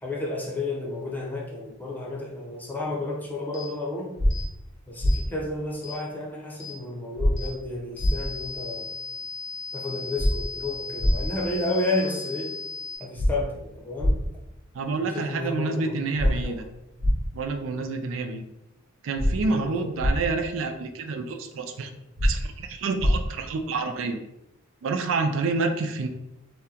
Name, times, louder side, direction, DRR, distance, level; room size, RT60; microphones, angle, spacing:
voice 1, 0.0-4.1 4.9-8.9 9.7-12.6 13.0-14.2 15.0-16.7 19.5-19.9, left 2 dB, 10° left, -3 dB, 0.6 m, -32 dB
sound 1, 3.5-3.7 4.3-4.5 5.1-5.2 5.8-6.0 6.6-6.8 7.4-7.5 8.0-13.0, left 5 dB, 85° left, 0.6 m, -37 dB
sound 2, 4.2-4.3 5.0-5.1 7.2-7.3 8.0-8.1 10.2-10.3 11.0-11.1 13.2-13.3 14.0-14.1 16.2-16.3 17.0-17.1 19.2-19.3 20.0-20.1 22.2-22.3 23.0-23.1, equal, 55° right, 0.9 m, -21 dB
voice 2, 14.7-16.6 17.3-18.4 19.0-21.9 22.2-24.2 24.8-26.1, right 3 dB, 70° right, 6 dB, 0.4 m, -28 dB
2.8 x 2.2 x 3.6 m, 0.88 s
head